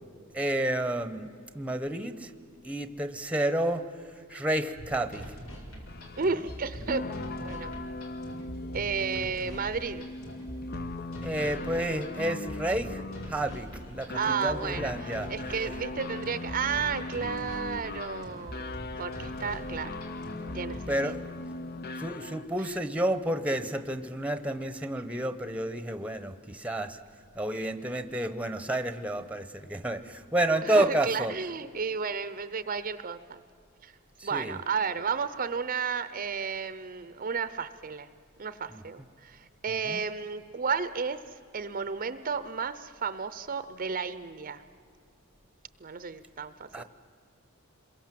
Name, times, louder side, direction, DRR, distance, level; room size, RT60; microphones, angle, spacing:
voice 1, 0.3-1.3 1.5-2.3 2.6-3.8 4.3-5.2 11.2-13.0 13.3-15.3 20.9-21.2 22.0-27.0 27.3-31.3 34.2-34.6 38.7-38.8 39.9-40.0 46.7-46.8, right 1 dB, 5° right, 10 dB, 1.0 m, -30 dB
sound 1, 4.8-20.8, equal, 80° left, 5.1 m, -43 dB
sound 2, 5.9-22.6, left 2 dB, 45° left, 0.7 m, -39 dB
voice 2, 6.2-7.0 7.4-7.7 8.7-10.0 14.1-19.9 20.5-21.2 22.6-22.7 30.6-33.4 33.8-33.9 34.2-38.1 38.4-44.6 45.8-46.8, right 5 dB, 40° right, 13 dB, 0.7 m, -33 dB
27.0 x 22.5 x 7.7 m, 2.4 s
head